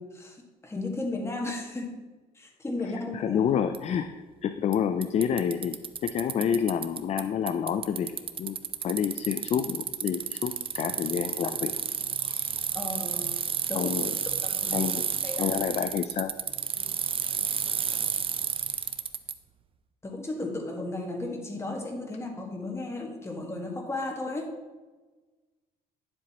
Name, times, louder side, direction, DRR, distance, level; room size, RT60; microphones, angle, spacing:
voice 1, 0.0-1.9 2.3-3.4 12.7-13.4 13.7-13.9 14.5-14.9 15.2-15.5 16.8-16.9 20.0-24.5, left 2 dB, 15° left, 0 dB, 1.7 m, -34 dB
voice 2, 3.1-4.1 4.4-11.7 12.2-12.5 13.7-14.1 14.7-15.0 15.4-16.3, left 8 dB, 40° left, 9 dB, 0.4 m, -29 dB
Bicycle, 3.7-3.8 4.7-4.8 5.0-7.2 7.5-19.3, right 7 dB, 30° right, 0.5 m, -31 dB
9.9 x 7.7 x 2.9 m, 1.3 s
cardioid pair, 110°, 17 cm